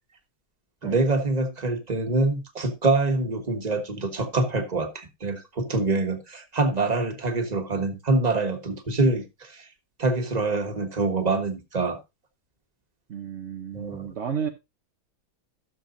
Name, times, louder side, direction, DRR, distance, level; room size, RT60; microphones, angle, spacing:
voice 1, 0.8-9.7 10.0-12.0 13.7-14.1, right 3 dB, 25° right, 1.3 m, -25 dB
voice 2, 13.1-14.5, right 7 dB, 60° right, 0.7 m, -32 dB
14.5 x 6.8 x 2.6 m
omnidirectional pair, 2.2 m